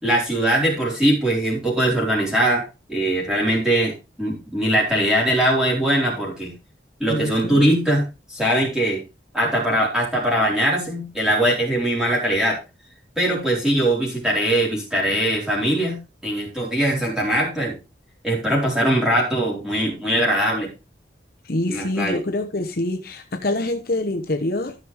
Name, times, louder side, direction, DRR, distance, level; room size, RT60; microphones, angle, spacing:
voice 1, 0.0-6.5 7.0-9.0 9.3-12.6 13.2-16.0 16.2-17.8 18.2-20.7 21.7-22.2, right 1 dB, 5° right, 4.2 m, -21 dB
voice 2, 7.1-7.7 21.4-24.7, left 2 dB, 50° left, 1.0 m, -25 dB
14.0 x 6.4 x 3.5 m
head